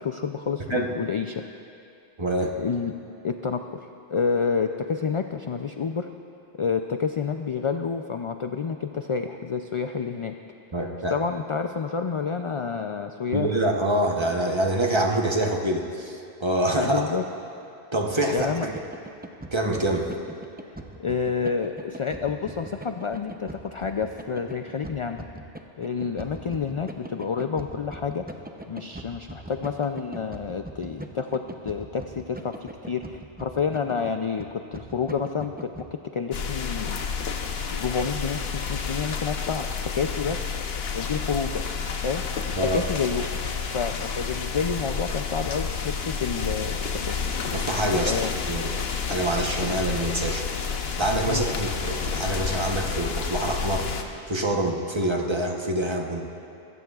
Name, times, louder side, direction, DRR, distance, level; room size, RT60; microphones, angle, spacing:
voice 1, 0.0-1.4 2.4-2.9 3.2-6.1 6.6-10.3 11.1-13.5 16.8-17.2 18.3-18.7 20.7-25.3 25.8-28.3 28.7-35.7 36.1-37.2 37.7-39.7 39.9-40.4 40.9-41.6 42.0-42.4 42.7-43.4 43.7-47.3 48.1-48.3 51.3-51.4, left 5 dB, 55° left, 6 dB, 0.3 m, -29 dB
voice 2, 2.2-2.5 10.7-11.2 13.3-17.0 17.9-18.7 19.5-20.1 42.6-42.8 47.5-48.2 48.5-48.7 49.1-50.5 51.0-53.9 54.3-56.2, right 1 dB, 30° right, 1 dB, 0.9 m, -25 dB
sound 1, 18.4-35.9, right 2 dB, 10° right, 0.5 m, -41 dB
sound 2, 36.3-54.0, left 5 dB, 75° left, 1.1 m, -30 dB
24.0 x 14.0 x 2.4 m, 2.6 s
omnidirectional pair, 1.1 m